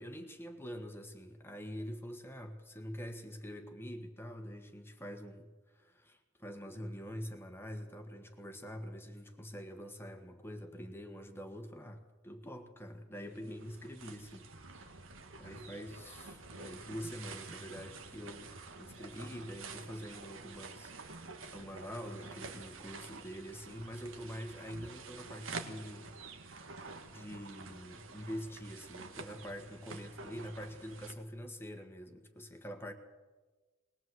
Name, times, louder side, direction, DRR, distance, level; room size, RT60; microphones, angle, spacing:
voice 1, 0.0-15.0 15.3-20.9 21.2-32.9, equal, 10° left, 5 dB, 1.5 m, -45 dB
sound 1, 13.2-31.1, right 3 dB, 70° right, 1.8 m, -49 dB
21.0 x 20.0 x 7.9 m, 1.3 s
head